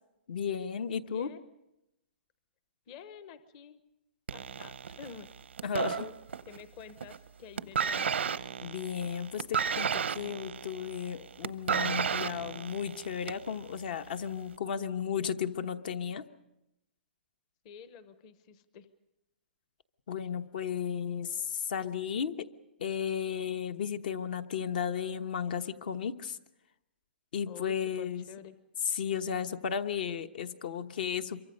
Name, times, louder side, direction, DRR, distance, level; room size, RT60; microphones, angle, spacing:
voice 1, 0.3-1.3 5.6-6.0 8.6-16.2 20.1-22.5 22.8-26.4 27.3-28.2 28.8-31.4, left 7 dB, 55° left, 10 dB, 1.1 m, -34 dB
voice 2, 1.1-1.4 2.9-3.8 4.3-5.3 5.8-6.2 6.4-8.1 17.6-18.9 27.4-28.6, left 7 dB, 30° left, 12 dB, 1.0 m, -49 dB
sound 1, 4.3-6.6 6.9-7.3 7.6-13.5 14.4-14.5, right 7 dB, 90° right, 0.8 m, -33 dB
26.5 x 23.5 x 5.4 m, 0.89 s
hypercardioid pair, 160°, 6 cm